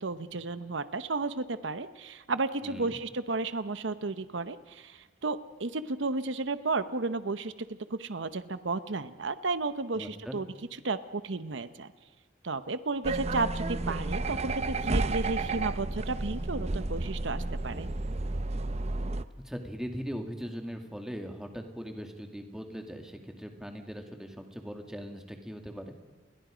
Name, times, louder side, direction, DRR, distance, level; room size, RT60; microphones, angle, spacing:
voice 1, 0.0-10.5 10.8-11.9 12.4-17.9, right 3 dB, 75° right, 12 dB, 0.9 m, -33 dB
voice 2, 2.6-3.0 9.9-10.4 19.4-25.9, equal, 5° right, 4 dB, 2.2 m, -40 dB
sound 1, 13.0-19.2, right 2 dB, 35° right, 0.7 m, -32 dB
30.0 x 22.0 x 5.1 m, 1.3 s
head